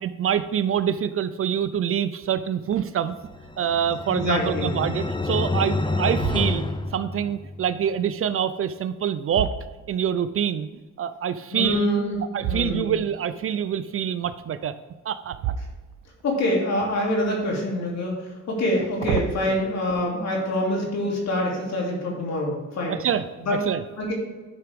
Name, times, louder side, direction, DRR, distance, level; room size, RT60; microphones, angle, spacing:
voice 1, 0.0-3.1 3.6-6.6 6.9-9.5 9.9-10.7 11.0-11.9 12.3-14.7 15.0-15.4 22.9-23.2 23.7-23.8, right 8 dB, 45° right, 13 dB, 0.5 m, -25 dB
sound 1, 3.2-7.8, left 2 dB, 15° left, 0.6 m, -28 dB
sound 2, 3.2-3.7 4.2-4.3 4.9-5.5 6.1-7.0 8.6-10.3 12.4-13.2 15.3-16.4 16.8-17.5 18.6-19.5, right 8 dB, 85° right, 0.6 m, -33 dB
voice 2, 4.1-4.7 11.5-12.2 12.5-12.9 16.2-23.0 23.4-23.6 24.0-24.1, left 1 dB, 60° left, -2 dB, 2.9 m, -25 dB
10.5 x 5.9 x 3.5 m, 1.3 s
cardioid pair, 90°, 30 cm